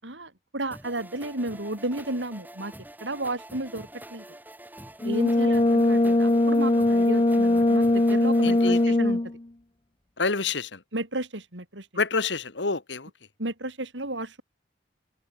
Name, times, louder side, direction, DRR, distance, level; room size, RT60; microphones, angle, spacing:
voice 1, 0.0-2.7 3.0-4.2 5.0-9.2 10.9-11.9 13.4-14.4, right 1 dB, 85° right, 6.0 m, -33 dB
sound 1, 0.7-8.8, right 1 dB, 10° right, 6.0 m, -46 dB
Brass instrument, 5.0-9.4, left 1 dB, 30° left, 0.8 m, -21 dB
voice 2, 8.4-9.0 10.2-10.8 12.0-13.1, left 4 dB, 75° left, 1.9 m, -28 dB
head